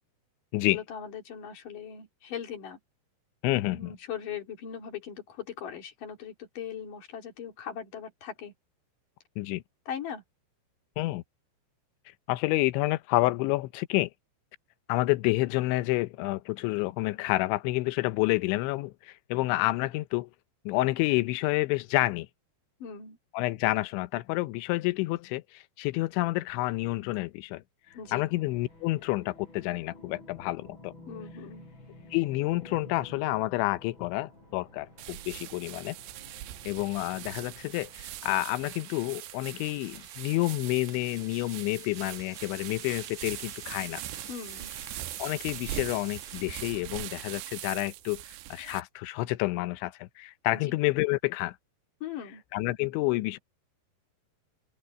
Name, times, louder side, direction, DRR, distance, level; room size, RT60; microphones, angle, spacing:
voice 1, 0.7-2.8 3.7-8.5 9.9-10.2 22.8-23.2 27.9-28.3 31.1-31.7 44.3-44.7 50.5-50.7 52.0-52.4, left 8 dB, 50° left, 4.5 m, -39 dB
voice 2, 3.4-3.9 9.4-9.6 11.0-11.2 12.3-14.1 14.9-20.3 20.7-22.3 23.3-27.6 28.1-30.9 32.1-36.0 36.7-44.0 45.2-48.2 48.5-51.6 52.5-53.4, left 20 dB, 90° left, 3.1 m, -29 dB
sound 1, 27.9-38.4, left 2 dB, 25° left, 8.6 m, -51 dB
sound 2, 31.9-48.1, right 2 dB, 15° right, 1.7 m, -53 dB
sound 3, 35.0-48.8, right 15 dB, 80° right, 3.0 m, -41 dB
open air
omnidirectional pair, 5.2 m